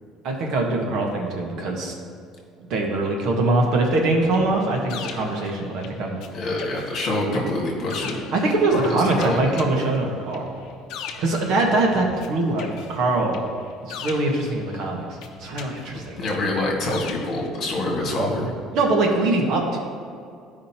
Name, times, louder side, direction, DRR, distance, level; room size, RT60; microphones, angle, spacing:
voice 1, 0.2-1.9 2.7-6.2 8.3-10.5 11.2-13.4 13.8-15.0 15.4-16.2 18.7-19.8, right 2 dB, 55° right, 0 dB, 1.2 m, -22 dB
sound 1, 4.3-6.3 6.6-12.3 12.6-14.8 15.2-17.5, left 7 dB, 65° left, 0.7 m, -40 dB
voice 2, 6.3-8.2 8.7-9.6 15.9-18.5, left 1 dB, 40° left, -2 dB, 1.7 m, -26 dB
13.5 x 5.0 x 2.9 m, 2.4 s
cardioid pair, 170°, 0 cm